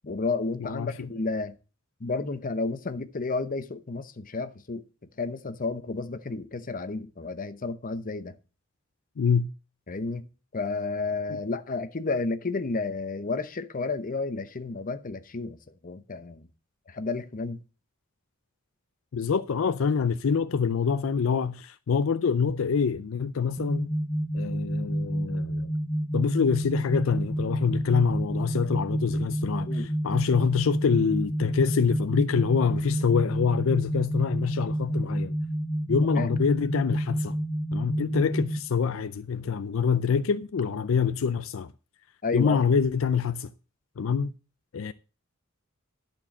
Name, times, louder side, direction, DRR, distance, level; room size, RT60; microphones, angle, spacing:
voice 1, 0.0-1.5 2.0-4.8 5.2-8.4 9.9-10.3 10.5-15.6 15.8-16.5 16.9-17.6 29.7-29.9 36.1-36.3 42.2-42.6, left 3 dB, 40° left, 0.8 m, -31 dB
voice 2, 0.6-0.9 9.2-9.5 19.1-23.9 24.3-25.7 26.1-35.4 35.9-37.4 37.7-41.7 42.3-43.5 44.0-44.3 44.7-44.9, left 6 dB, 70° left, 0.4 m, -26 dB
sound 1, 23.6-38.6, right 1 dB, 20° left, 1.1 m, -29 dB
11.5 x 4.5 x 7.2 m
head